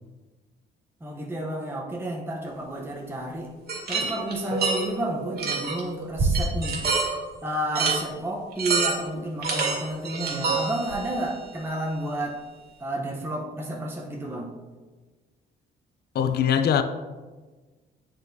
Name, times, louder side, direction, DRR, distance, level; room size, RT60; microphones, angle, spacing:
voice 1, 1.0-3.5 3.9-6.8 7.4-12.4 12.8-14.6, right 1 dB, 10° right, 0.8 m, -31 dB
sound 1, 3.7-4.9 5.4-5.8 6.2-7.1 7.8-8.0 8.5-9.2 9.4-11.1, right 4 dB, 55° right, 1.9 m, -26 dB
sound 2, 4.5-9.2, right 3 dB, 40° right, 0.9 m, -40 dB
voice 2, 16.1-16.8, left 8 dB, 55° left, 0.4 m, -21 dB
8.6 x 4.3 x 2.7 m
cardioid pair, 90°, 20 cm